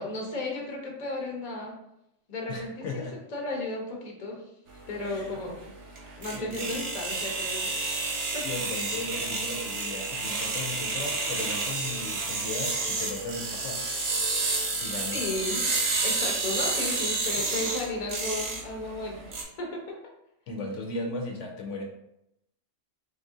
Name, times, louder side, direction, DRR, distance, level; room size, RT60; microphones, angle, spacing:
voice 1, 0.0-1.8 2.3-3.0 3.3-4.4 4.9-5.6 6.2-8.0 8.3-8.5 15.1-15.7 16.0-20.0, left 2 dB, 35° left, 0 dB, 0.8 m, -34 dB
voice 2, 2.5-3.2 5.0-5.3 6.3-6.8 8.4-13.8 14.8-15.2 20.5-21.8, left 2 dB, 75° left, 0 dB, 0.9 m, -36 dB
sound 1, 4.7-19.4, right 3 dB, 65° right, 1.1 m, -30 dB
3.6 x 2.6 x 3.6 m, 0.81 s
omnidirectional pair, 1.3 m